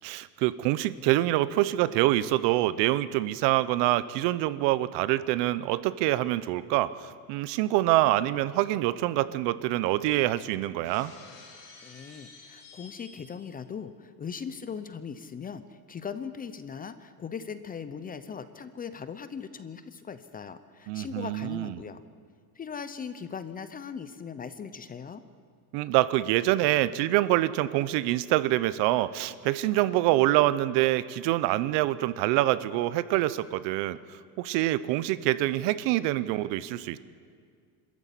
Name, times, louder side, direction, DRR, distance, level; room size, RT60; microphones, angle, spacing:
voice 1, 0.0-11.1 20.9-21.7 25.7-34.0 34.4-37.0, right 15 dB, 65° right, 16 dB, 0.9 m, -25 dB
Shatter, 10.8-13.6, left 4 dB, 55° left, 5.4 m, -51 dB
voice 2, 11.8-22.0 22.6-25.2, left 6 dB, 20° left, 12 dB, 0.6 m, -39 dB
26.0 x 14.0 x 8.4 m, 2.1 s
cardioid pair, 150°, 45 cm